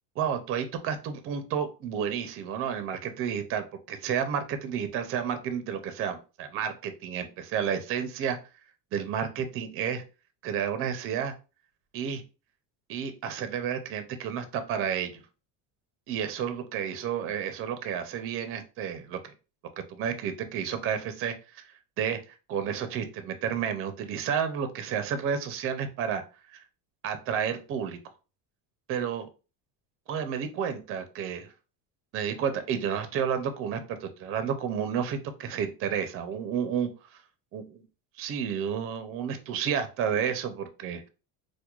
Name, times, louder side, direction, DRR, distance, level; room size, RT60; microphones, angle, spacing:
voice 1, 0.2-8.4 8.9-10.0 10.4-11.3 11.9-12.2 12.9-15.2 16.1-19.3 19.8-21.6 22.0-22.2 22.5-26.2 26.5-26.6 27.0-28.0 28.9-29.3 30.1-31.5 32.1-36.9 37.5-37.8 38.2-41.0, right 8 dB, 35° right, 9 dB, 0.4 m, -31 dB
4.4 x 2.1 x 2.3 m, 0.32 s
cardioid pair, 160°, 41 cm